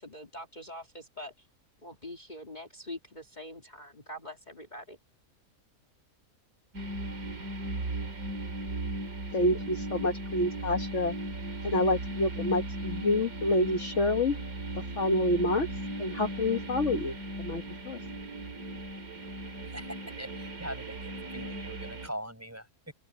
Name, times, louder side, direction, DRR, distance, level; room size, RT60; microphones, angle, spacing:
voice 1, 0.0-1.5 1.8-5.0, left 1 dB, 30° left, 2.4 m, -44 dB
sound 1, 6.7-22.1, right 1 dB, 70° right, 2.7 m, -37 dB
voice 2, 9.3-11.1 11.6-14.4 15.0-15.7 16.0-18.0, left 1 dB, 55° left, 1.7 m, -28 dB
voice 3, 19.7-22.9, equal, 10° right, 4.5 m, -42 dB
open air
omnidirectional pair, 1.6 m